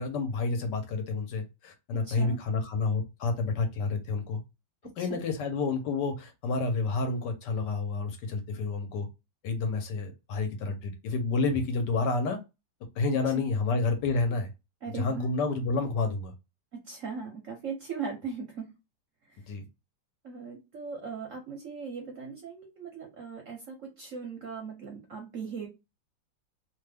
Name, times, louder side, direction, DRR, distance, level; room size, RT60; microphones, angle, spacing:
voice 1, 0.0-4.4 5.0-9.1 9.4-12.4 13.0-14.5 14.9-16.3 19.5-19.6, left 3 dB, 70° left, 6 dB, 1.3 m, -29 dB
voice 2, 2.0-2.4 5.0-5.2 14.8-15.3 16.7-18.8 19.2-19.5 20.2-25.7, right 5 dB, 60° right, 2 dB, 0.8 m, -39 dB
3.1 x 2.2 x 3.3 m, 0.25 s
omnidirectional pair, 2.0 m